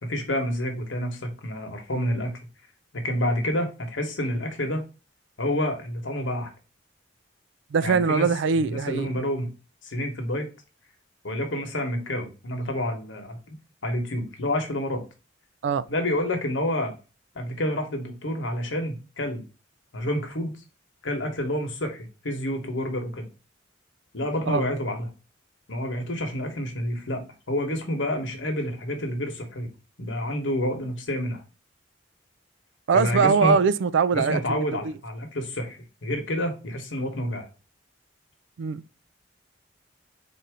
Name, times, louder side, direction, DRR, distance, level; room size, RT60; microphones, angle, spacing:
voice 1, 0.0-2.4 2.9-4.8 5.4-6.5 7.8-9.5 9.8-10.5 11.2-13.4 13.8-15.0 15.9-16.9 17.3-19.4 19.9-20.5 21.0-23.3 24.1-25.1 25.7-27.2 27.5-29.7 30.0-31.4 32.9-33.6 34.1-37.4, left 1 dB, 80° left, 1.1 m, -28 dB
voice 2, 7.7-9.1 15.6-15.8 24.5-24.6 32.9-34.9 38.6-38.8, right 5 dB, 75° right, 0.3 m, -22 dB
4.2 x 2.6 x 4.6 m
head